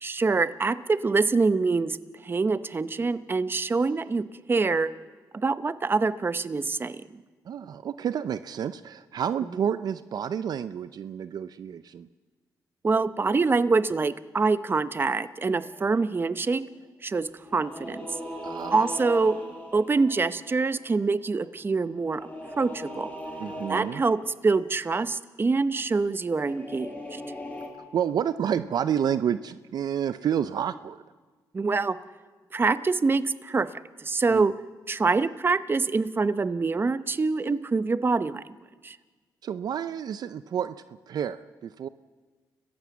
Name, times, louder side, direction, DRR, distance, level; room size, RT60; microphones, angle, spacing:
voice 1, 0.0-2.0 2.2-4.9 5.4-7.0 12.8-16.6 17.0-18.1 18.7-19.4 19.7-22.3 22.6-23.1 23.7-24.2 24.4-27.2 31.5-32.0 32.5-33.7 34.0-34.5 34.9-38.4 38.8-39.0, right 4 dB, 30° right, 13 dB, 0.9 m, -25 dB
voice 2, 7.5-12.1 18.4-18.9 23.4-24.0 27.9-31.0 34.3-34.5 39.4-40.8 41.1-41.9, right 8 dB, 65° right, 13 dB, 0.6 m, -29 dB
sound 1, 15.4-16.2 17.4-20.9 22.0-24.4 26.3-27.7, equal, 20° left, 6.8 m, -39 dB
29.5 x 15.5 x 7.2 m, 1.4 s
cardioid pair, 85°, 7 cm